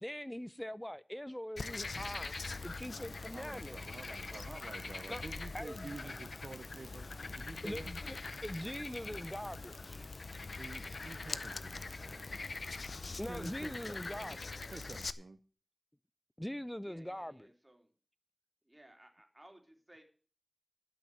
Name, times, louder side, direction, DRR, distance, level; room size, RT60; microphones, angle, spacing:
voice 1, 0.0-2.3 2.6-3.8 5.1-5.2 5.5-5.9 7.6-10.1 13.2-14.5 16.4-17.5, equal, 10° left, 0.5 m, -42 dB
Frog, 1.6-15.1, left 3 dB, 80° left, 0.6 m, -43 dB
voice 2, 3.3-7.1 7.4-8.0 10.6-12.4 13.3-14.4 14.7-15.4, right 3 dB, 70° right, 0.6 m, -49 dB
voice 3, 16.8-17.9 18.6-20.0, right 1 dB, 20° right, 3.2 m, -60 dB
11.5 x 6.3 x 8.8 m
wide cardioid pair, 45°, 0 cm